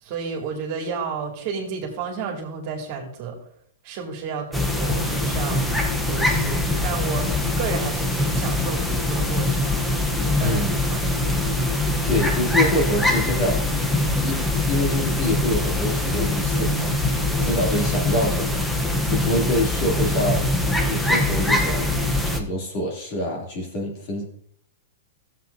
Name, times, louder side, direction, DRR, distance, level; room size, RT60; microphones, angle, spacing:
voice 1, 0.0-3.4 3.8-5.7 6.1-7.3 7.6-9.8 10.4-11.0, right 5 dB, 45° right, 0 dB, 2.2 m, -31 dB
sound 1, 4.5-22.4, left 2 dB, 5° left, 0.8 m, -23 dB
voice 2, 10.4-10.8 11.8-13.6 14.2-16.9 17.4-18.7 19.1-20.5 20.8-21.9 22.3-24.3, left 1 dB, 45° left, -1 dB, 2.7 m, -26 dB
14.0 x 7.5 x 2.7 m, 0.63 s
hypercardioid pair, 145°, 0 cm